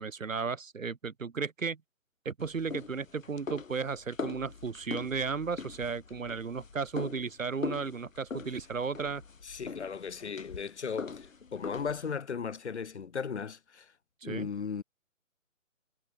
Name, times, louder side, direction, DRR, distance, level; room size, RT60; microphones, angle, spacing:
voice 1, 0.0-1.8 2.2-9.2 14.2-14.5, right 5 dB, 70° right, 2.7 m, -34 dB
sound 1, 2.4-12.1, left 5 dB, 70° left, 4.0 m, -42 dB
voice 2, 9.4-13.9 14.2-14.8, left 6 dB, 55° left, 6.1 m, -36 dB
figure-of-eight pair, 160°, 41 cm